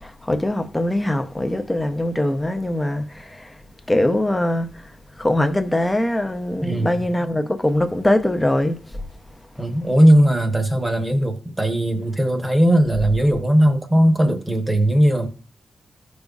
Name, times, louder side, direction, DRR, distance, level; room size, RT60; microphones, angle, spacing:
voice 1, 0.0-3.5 3.9-4.8 5.2-8.8, left 1 dB, 10° left, 0.6 m, -22 dB
voice 2, 6.6-7.1 9.6-15.3, equal, 15° right, 1.0 m, -18 dB
15.0 x 5.3 x 2.4 m
wide cardioid pair, 160°, 0 cm